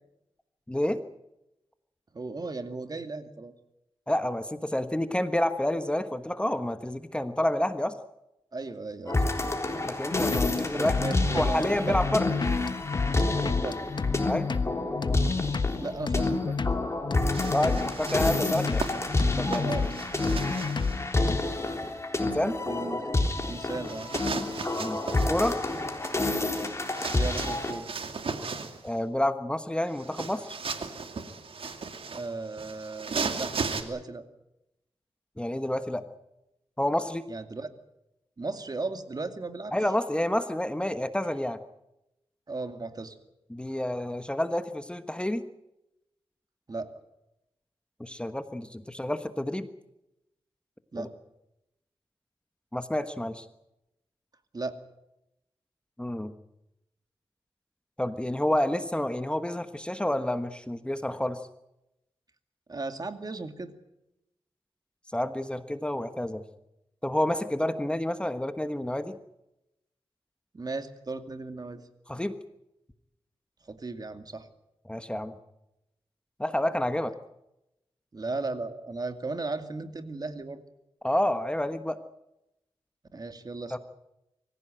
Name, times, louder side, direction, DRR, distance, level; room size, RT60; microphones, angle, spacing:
voice 1, 0.7-1.0 4.1-8.0 9.8-11.0 11.3-12.3 14.2-14.5 17.5-18.9 19.4-19.7 22.2-22.6 24.8-25.0 25.3-25.6 28.8-30.6 35.4-36.0 36.8-37.2 39.7-41.6 43.5-45.4 48.0-49.7 51.0-51.1 52.7-53.5 56.0-56.3 58.0-61.4 65.1-66.4 67.0-69.2 72.1-72.3 74.9-75.3 76.4-77.1 81.0-82.0 83.7-83.8, left 1 dB, 10° left, 10 dB, 1.2 m, -29 dB
voice 2, 2.1-3.5 8.5-9.2 10.7-12.0 13.3-13.8 15.8-16.6 19.6-20.0 22.6-23.1 23.5-24.1 27.1-27.9 32.1-34.2 37.3-37.7 38.4-39.7 42.5-43.2 46.7-46.9 50.9-51.1 54.5-54.8 62.7-63.7 70.5-71.8 73.7-74.5 78.1-80.6 83.1-83.8, right 3 dB, 45° right, 8 dB, 2.3 m, -36 dB
sound 1, 9.1-27.7, left 2 dB, 30° left, 3.8 m, -29 dB
sound 2, 10.1-21.4, left 4 dB, 50° left, 1.3 m, -30 dB
sound 3, 17.3-21.1 23.8-28.9 29.9-33.8, right 4 dB, 75° right, 2.5 m, -36 dB
25.0 x 15.5 x 9.1 m, 0.89 s
wide cardioid pair, 75°, 9 cm